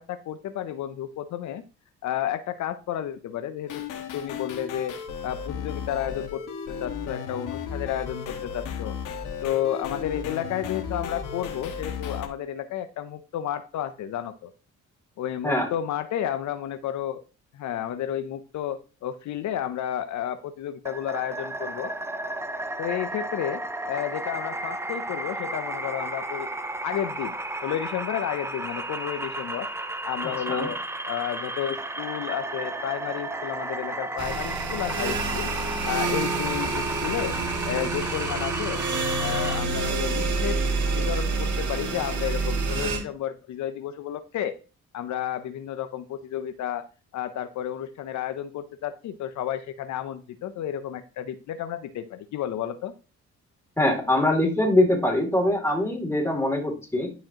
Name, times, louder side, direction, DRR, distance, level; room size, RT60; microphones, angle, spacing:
voice 1, 0.0-1.6 2.0-3.8 4.1-5.0 5.2-9.0 9.4-14.5 15.2-17.2 17.5-21.9 22.8-26.5 26.8-29.7 30.0-30.8 31.1-35.5 35.9-37.4 37.6-38.9 39.2-44.6 44.9-46.9 47.1-52.9, left 10 dB, 70° left, 10 dB, 0.6 m, -31 dB
sound 1, 3.7-12.3, left 7 dB, 90° left, 1.4 m, -35 dB
sound 2, 20.9-39.6, right 2 dB, 10° right, 0.5 m, -33 dB
sound 3, 34.2-43.0, right 3 dB, 70° right, 2.0 m, -28 dB
voice 2, 53.8-57.1, left 1 dB, 10° left, 1 dB, 2.6 m, -23 dB
11.0 x 5.1 x 2.9 m, 0.34 s
cardioid pair, 90°, 30 cm